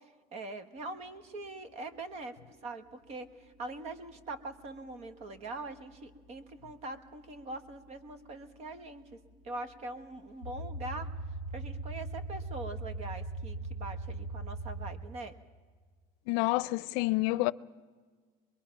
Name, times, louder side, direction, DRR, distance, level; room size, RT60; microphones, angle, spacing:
voice 1, 0.3-2.4 2.6-9.0 9.4-11.1 11.5-15.3, right 2 dB, 35° right, 1.3 m, -42 dB
sound 1, 0.8-14.9, right 2 dB, 60° right, 5.2 m, -41 dB
voice 2, 16.3-17.5, left 21 dB, 75° left, 0.6 m, -28 dB
25.5 x 21.5 x 5.8 m
cardioid pair, 170°, 18 cm